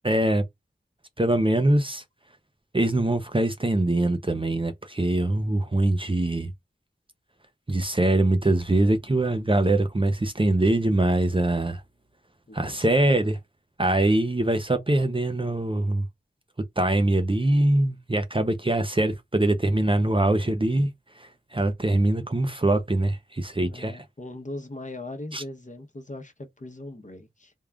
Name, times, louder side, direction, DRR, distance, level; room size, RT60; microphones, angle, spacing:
voice 1, 0.0-0.4 1.2-2.0 2.7-6.5 7.7-11.8 12.5-13.3 13.8-16.0 16.8-20.9 21.2-24.0 25.3-25.4, right 1 dB, 25° right, 0.6 m, -23 dB
voice 2, 12.5-13.3 23.5-27.5, left 2 dB, 40° left, 0.9 m, -40 dB
3.5 x 2.4 x 3.5 m
wide cardioid pair, 60°, 20 cm